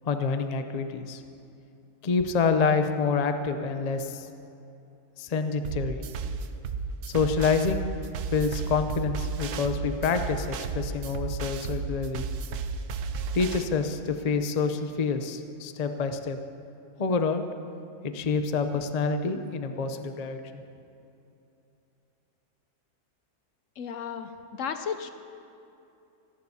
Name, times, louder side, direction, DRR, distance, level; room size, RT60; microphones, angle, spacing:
voice 1, 0.1-1.2 2.0-4.3 5.2-6.0 7.1-7.8 8.3-12.2 13.3-16.4 17.0-17.4 18.0-20.4, left 5 dB, 50° left, 8 dB, 0.4 m, -27 dB
sound 1, 5.6-13.6, right 5 dB, 90° right, 1.2 m, -33 dB
voice 2, 23.8-25.1, left 7 dB, 65° left, 8 dB, 0.8 m, -34 dB
25.5 x 11.5 x 2.8 m, 2.8 s
omnidirectional pair, 1.6 m